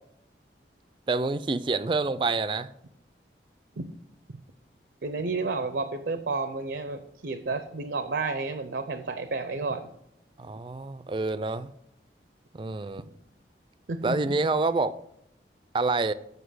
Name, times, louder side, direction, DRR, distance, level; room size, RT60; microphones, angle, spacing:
voice 1, 1.1-2.7 10.4-11.7 12.5-13.0 14.0-14.9 15.7-16.1, right 3 dB, 25° right, 0.3 m, -27 dB
voice 2, 5.0-9.9 13.9-14.3, right 3 dB, 75° right, 0.6 m, -31 dB
8.0 x 5.5 x 6.3 m
head